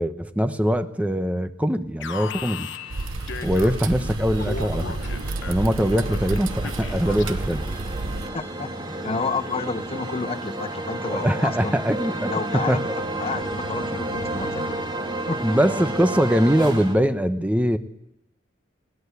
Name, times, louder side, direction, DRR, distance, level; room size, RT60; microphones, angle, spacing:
voice 1, 0.0-2.7 3.4-5.0 5.5-7.7 11.1-12.3 12.7-12.9 15.4-17.8, equal, 5° right, 9 dB, 0.9 m, -22 dB
Alarm, 2.0-4.0 4.4-7.7, left 5 dB, 65° left, 1.1 m, -37 dB
sound 1, 2.2-16.9, right 1 dB, 25° right, 2.4 m, -32 dB
sound 2, 2.9-8.3, right 2 dB, 85° right, 1.1 m, -30 dB
voice 2, 8.3-8.7 9.0-11.8 12.3-12.8 13.2-14.8 15.3-15.6, left 4 dB, 30° left, 13 dB, 0.7 m, -30 dB
20.0 x 18.0 x 8.3 m, 0.80 s
head